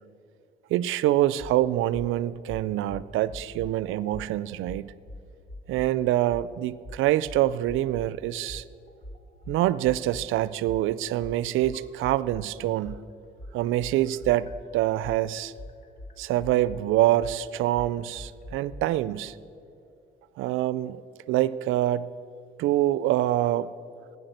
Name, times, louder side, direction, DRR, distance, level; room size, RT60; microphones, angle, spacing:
voice 1, 0.7-4.9 5.7-8.6 9.5-13.1 13.5-15.5 16.2-19.4 20.4-21.0 21.3-22.1 22.6-23.7, right 14 dB, 90° right, 17 dB, 0.4 m, -25 dB
sound 1, 1.4-1.6 1.9-2.1 2.5-3.7 4.1-4.3 4.7-5.9 6.3-6.5 6.8-8.1 8.5-12.5 12.8-18.8, left 1 dB, 45° left, 1.5 m, -42 dB
11.5 x 9.7 x 7.9 m, 2.5 s
cardioid pair, 90°, 20 cm